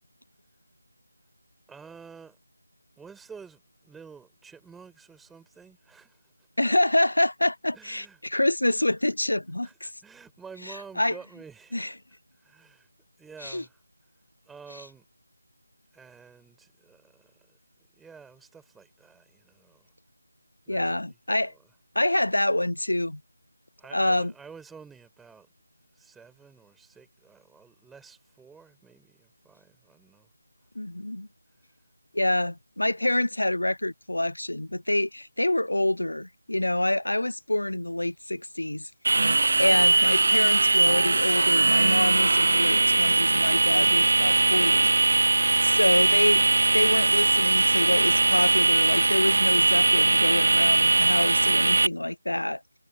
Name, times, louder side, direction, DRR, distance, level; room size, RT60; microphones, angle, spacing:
voice 1, 1.7-2.4 3.0-6.2 7.7-8.2 9.6-11.8 12.4-12.9 13.2-13.8 14.5-15.0 15.9-17.6 18.0-19.9 20.7-20.8 23.8-25.5 26.0-30.3, right 5 dB, 5° right, 6.5 m, -49 dB
voice 2, 6.6-9.9 10.7-11.2 11.7-11.9 13.4-13.6 14.7-14.8 20.7-21.5 21.9-23.2 23.9-24.3 30.8-31.3 32.1-38.9 39.6-44.9 45.6-46.4 46.7-52.6, left 1 dB, 65° left, 0.8 m, -27 dB
sound 1, 39.0-51.9, right 3 dB, 50° right, 0.5 m, -21 dB
figure-of-eight pair, 160°, 0 cm